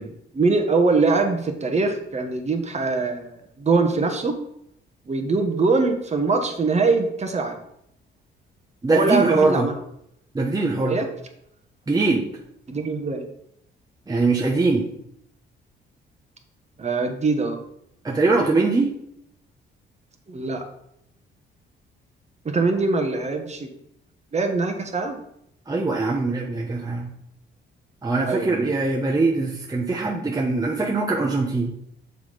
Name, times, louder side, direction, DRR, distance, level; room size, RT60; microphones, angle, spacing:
voice 1, 0.0-4.3 5.1-7.6 8.9-9.8 10.9-11.1 12.7-13.3 16.8-17.6 20.3-20.6 22.4-23.7 24.3-25.2 28.2-28.7, right 3 dB, 35° right, 5 dB, 1.2 m, -23 dB
voice 2, 8.8-9.7 10.3-11.0 11.9-12.3 14.1-14.9 18.0-18.9 25.7-27.1 28.0-31.7, right 3 dB, 20° right, -1 dB, 0.9 m, -22 dB
6.9 x 4.2 x 5.0 m, 0.75 s
cardioid pair, 90°, 20 cm